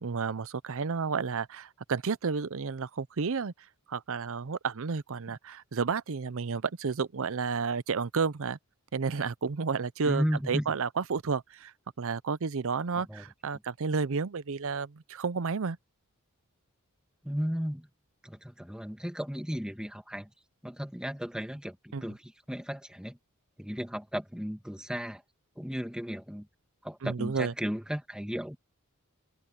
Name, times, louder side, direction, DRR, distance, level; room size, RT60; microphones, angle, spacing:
voice 1, 0.0-3.5 3.9-8.6 8.9-15.8 21.9-22.0 27.0-27.5, right 5 dB, 65° right, 0.6 m, -31 dB
voice 2, 10.0-10.8 13.0-13.2 17.2-17.9 18.2-20.3 20.6-22.2 22.5-23.2 23.6-25.2 25.6-26.5 26.8-28.6, equal, 5° right, 1.9 m, -34 dB
head